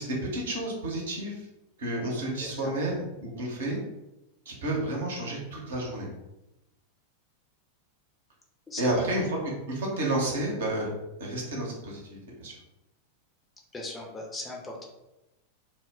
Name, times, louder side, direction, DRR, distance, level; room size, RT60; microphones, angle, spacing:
voice 1, 0.0-1.5 1.8-3.8 4.5-6.1 8.8-9.2 9.7-10.9 11.2-12.5, right 1 dB, 60° right, -2 dB, 0.8 m, -31 dB
voice 2, 2.4-2.7 8.7-9.0 13.7-14.9, left 2 dB, 15° left, -1 dB, 0.5 m, -38 dB
2.1 x 2.0 x 3.4 m, 0.95 s
figure-of-eight pair, 90°, 0 cm